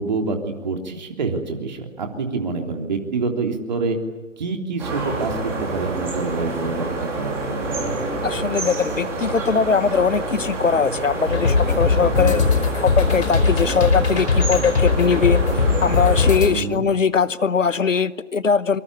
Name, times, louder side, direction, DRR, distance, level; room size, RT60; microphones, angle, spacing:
voice 1, 0.0-4.0 4.4-7.7 12.2-12.5 16.5-16.8, right 4 dB, 35° right, 3 dB, 3.4 m, -27 dB
sound 1, 4.8-16.4, right 2 dB, 5° right, 2.8 m, -28 dB
voice 2, 8.2-12.4 12.8-18.8, left 5 dB, 70° left, 16 dB, 1.1 m, -21 dB
sound 2, 11.3-16.5, left 4 dB, 55° left, 4.9 m, -20 dB
26.0 x 24.5 x 8.4 m, 1.2 s
figure-of-eight pair, 160°, 39 cm